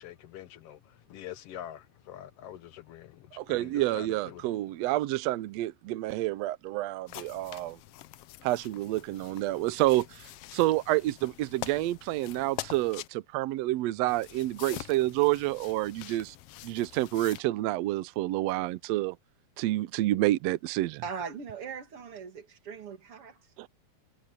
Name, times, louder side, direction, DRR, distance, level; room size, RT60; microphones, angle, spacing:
voice 1, 0.0-4.5, left 11 dB, 65° left, 1.8 m, -45 dB
voice 2, 3.4-7.8 8.4-16.3 16.6-19.2 19.6-21.0 23.6-23.7, right 16 dB, 75° right, 1.7 m, -29 dB
sound 1, 7.1-13.1 14.1-17.4, left 16 dB, 90° left, 1.3 m, -45 dB
voice 3, 21.0-23.5, right 6 dB, 50° right, 2.9 m, -40 dB
omnidirectional pair, 3.3 m